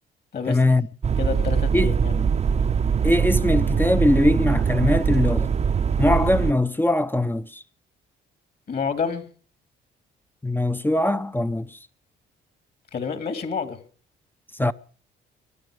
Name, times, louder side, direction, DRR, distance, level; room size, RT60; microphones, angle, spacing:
voice 1, 0.5-0.9 1.7-1.9 3.0-5.5 6.0-7.6 10.4-11.8 14.6-14.7, left 1 dB, 10° left, 0.6 m, -21 dB
sound 1, 1.0-6.5, right 6 dB, 35° right, 0.7 m, -22 dB
voice 2, 1.2-2.1 8.7-9.3 12.9-13.8, left 6 dB, 50° left, 2.7 m, -28 dB
23.0 x 10.5 x 5.0 m
cardioid pair, 90°, 20 cm